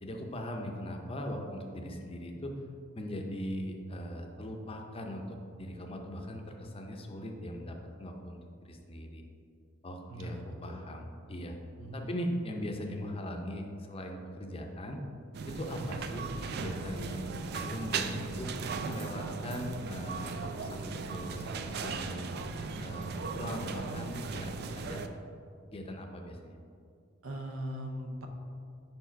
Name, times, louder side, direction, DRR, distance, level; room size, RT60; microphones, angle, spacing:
voice 1, 0.0-2.5 2.9-9.2 9.8-11.5 11.9-15.0 15.5-18.5 18.9-22.3 22.8-25.1 25.7-26.6, equal, 30° left, 3 dB, 0.5 m, -40 dB
voice 2, 10.1-10.9 11.8-12.1 27.2-28.3, equal, 85° right, 4 dB, 0.7 m, -40 dB
sound 1, 15.3-25.1, right 4 dB, 50° right, 0.3 m, -37 dB
5.4 x 4.7 x 4.4 m, 2.4 s
head